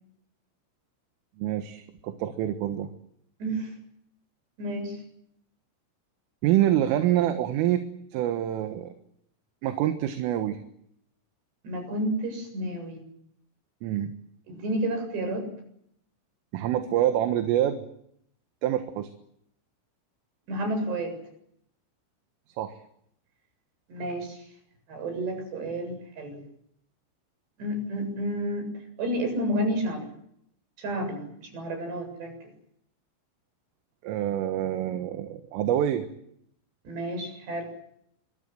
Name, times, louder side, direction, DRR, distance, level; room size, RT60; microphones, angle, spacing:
voice 1, 1.4-2.9 6.4-7.8 8.1-8.9 9.6-10.6 13.8-14.1 16.5-17.8 18.6-19.1 22.6-22.8 34.0-36.1, right 12 dB, 80° right, 7 dB, 4.0 m, -26 dB
voice 2, 3.4-3.7 4.6-5.0 11.6-13.0 14.5-15.5 20.5-21.2 23.9-24.4 24.9-26.4 27.6-28.7 29.0-30.1 30.8-32.5 36.8-37.7, right 1 dB, 55° right, 5 dB, 9.5 m, -31 dB
26.0 x 23.5 x 7.8 m, 0.72 s
omnidirectional pair, 5.9 m